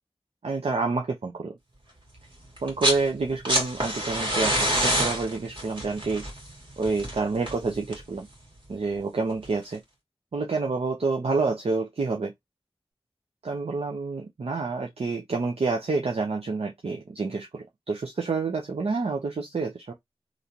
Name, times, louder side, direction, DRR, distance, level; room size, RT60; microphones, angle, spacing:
voice 1, 0.4-1.5 2.6-6.3 6.8-8.3 8.7-9.8 10.3-12.3 13.4-19.9, right 4 dB, 70° right, 0.6 m, -28 dB
sound 1, 2.6-3.0 3.3-8.2 9.4-9.5, equal, 50° right, 1.9 m, -27 dB
3.2 x 2.6 x 2.7 m
wide cardioid pair, 50°, 11 cm